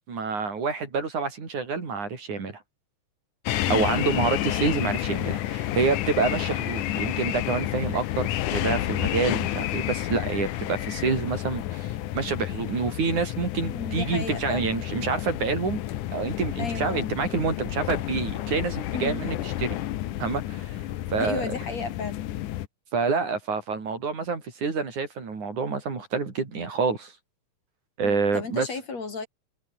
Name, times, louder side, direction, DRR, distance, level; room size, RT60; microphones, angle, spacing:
voice 1, 0.1-2.6 3.7-15.8 16.1-19.8 20.2-20.8 21.1-21.4 22.9-27.1 28.0-28.7, right 4 dB, 70° right, 6.3 m, -27 dB
sound 1, 3.5-22.7, left 14 dB, 80° left, 2.6 m, -30 dB
voice 2, 3.6-4.0 13.7-14.7 16.6-17.2 18.9-19.3 21.2-22.2 28.0-29.3, left 4 dB, 55° left, 6.0 m, -34 dB
omnidirectional pair, 3.6 m